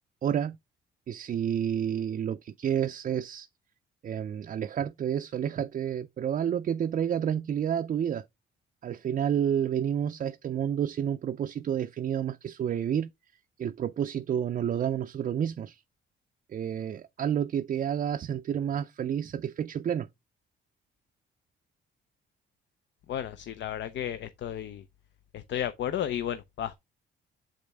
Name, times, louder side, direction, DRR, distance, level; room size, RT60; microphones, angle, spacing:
voice 1, 0.2-0.6 1.1-3.5 4.0-8.2 8.8-13.1 13.6-15.8 16.5-20.1, right 9 dB, 40° right, 0.4 m, -30 dB
voice 2, 23.1-24.8 25.3-26.8, left 10 dB, 65° left, 0.6 m, -33 dB
7.0 x 5.1 x 3.5 m
cardioid pair, 90°, 20 cm